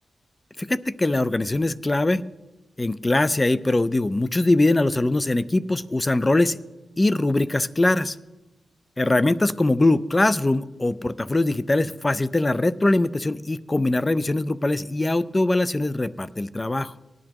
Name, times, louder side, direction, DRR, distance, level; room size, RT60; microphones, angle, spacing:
voice 1, 0.6-2.2 2.8-6.6 7.0-8.2 9.0-16.9, left 2 dB, 25° left, 16 dB, 0.4 m, -22 dB
18.0 x 11.0 x 2.9 m, 1.0 s
cardioid pair, 75°, 0 cm